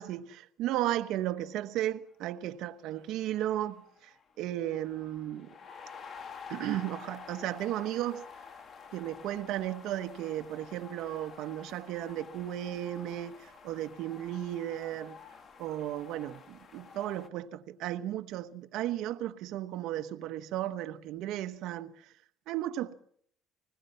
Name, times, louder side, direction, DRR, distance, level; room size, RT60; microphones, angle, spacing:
voice 1, 0.0-5.5 6.5-8.3 8.9-15.2 15.6-21.9 22.5-22.9, right 13 dB, 70° right, 1.1 m, -35 dB
sound 1, 2.7-2.8 3.0-17.3, left 6 dB, 40° left, 1.9 m, -50 dB
26.0 x 20.0 x 5.6 m
cardioid pair, 130°, 0 cm